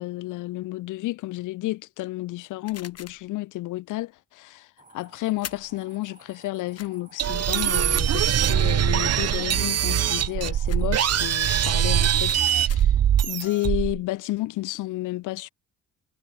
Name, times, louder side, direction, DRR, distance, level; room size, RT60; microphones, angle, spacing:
voice 1, 0.0-12.9 13.2-15.5, left 18 dB, 90° left, 1.0 m, -31 dB
sound 1, 2.7-3.3 5.4-5.8 6.7-6.9 9.3-9.7 10.7-10.9 12.3-13.1, left 8 dB, 55° left, 4.3 m, -42 dB
sound 2, 4.8-12.0, right 4 dB, 25° right, 8.0 m, -53 dB
sound 3, 7.2-14.0, right 10 dB, 55° right, 1.3 m, -22 dB
cardioid pair, 90°, 30 cm